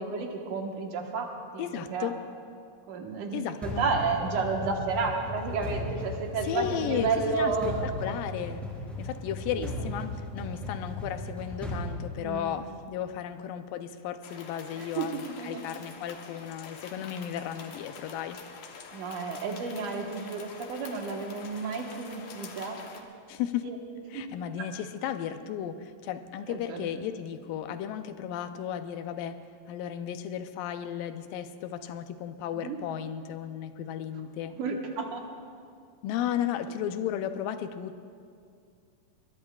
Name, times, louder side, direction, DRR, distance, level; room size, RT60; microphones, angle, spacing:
voice 1, 0.0-1.6 1.9-2.1 2.9-7.8 9.6-9.7 12.2-12.6 14.7-15.6 18.9-22.8 23.6-23.8 24.1-24.3 24.6-24.7 26.5-26.9 32.6-32.8 34.5-35.2, right 4 dB, 70° right, 1 dB, 2.7 m, -32 dB
voice 2, 1.6-2.2 3.3-3.8 6.4-7.5 7.8-8.6 9.0-18.4 23.3-23.7 24.1-29.4 29.7-34.5 36.0-38.1, left 9 dB, 85° left, 9 dB, 2.4 m, -34 dB
sound 1, 3.6-12.8, left 1 dB, ahead, 3.1 m, -37 dB
sound 2, 14.2-23.0, left 5 dB, 65° left, 1.7 m, -46 dB
21.5 x 21.5 x 2.4 m, 2.3 s
omnidirectional pair, 3.9 m